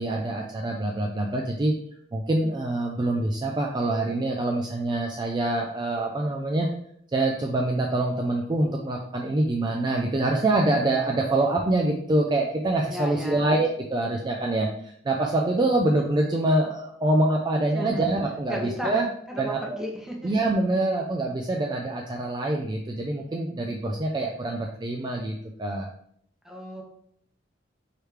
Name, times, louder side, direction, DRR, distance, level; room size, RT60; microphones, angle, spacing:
voice 1, 0.0-1.7 2.1-6.7 7.1-19.1 19.4-19.8 20.2-25.9, right 2 dB, 25° right, 0 dB, 0.4 m, -25 dB
voice 2, 12.9-13.6 17.7-18.1 18.5-19.0 19.3-20.3 26.4-26.8, equal, 5° right, 0 dB, 0.7 m, -34 dB
4.8 x 3.1 x 3.3 m, 0.67 s
head